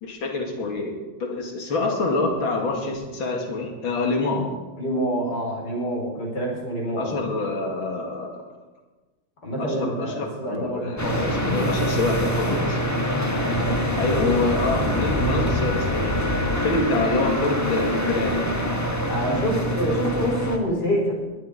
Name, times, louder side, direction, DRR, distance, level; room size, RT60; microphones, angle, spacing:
voice 1, 0.0-0.9 1.2-4.5 7.0-8.4 9.6-12.9 14.0-16.2 16.5-18.5, left 2 dB, 85° left, 2 dB, 2.8 m, -26 dB
voice 2, 4.8-7.3 9.4-11.3 13.3-13.8 19.1-21.1, equal, 60° left, -2 dB, 5.0 m, -27 dB
sound 1, 11.0-20.6, equal, 10° left, 1.3 m, -24 dB
20.5 x 10.5 x 4.9 m, 1.2 s
omnidirectional pair, 2.1 m